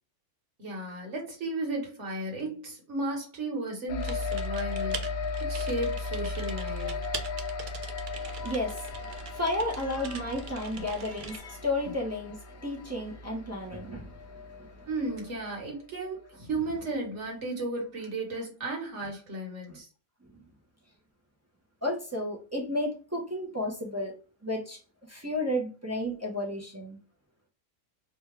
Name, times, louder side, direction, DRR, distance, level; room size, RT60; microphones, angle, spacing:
voice 1, 0.6-7.0 14.9-19.9, right 2 dB, 55° right, 1.6 m, -34 dB
sound 1, 3.9-15.7, left 4 dB, 85° left, 1.1 m, -36 dB
Typing, 4.0-11.4, right 6 dB, 85° right, 0.4 m, -43 dB
voice 2, 8.1-14.8 19.7-19.8 20.3-20.4 21.8-24.1 24.4-24.8 25.1-27.0, left 1 dB, 20° right, 0.5 m, -33 dB
3.4 x 2.3 x 3.3 m
omnidirectional pair, 1.5 m